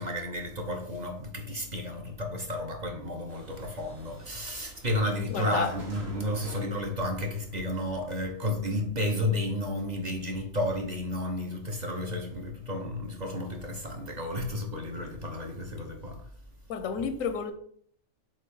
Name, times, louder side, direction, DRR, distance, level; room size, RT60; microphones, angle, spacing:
voice 1, 0.0-16.2, left 1 dB, 35° right, 1.0 m, -32 dB
sound 1, 3.3-8.5, right 1 dB, 80° right, 2.1 m, -47 dB
voice 2, 5.3-5.8 16.7-17.5, left 6 dB, 90° left, 1.1 m, -31 dB
7.6 x 2.7 x 5.4 m
omnidirectional pair, 1.4 m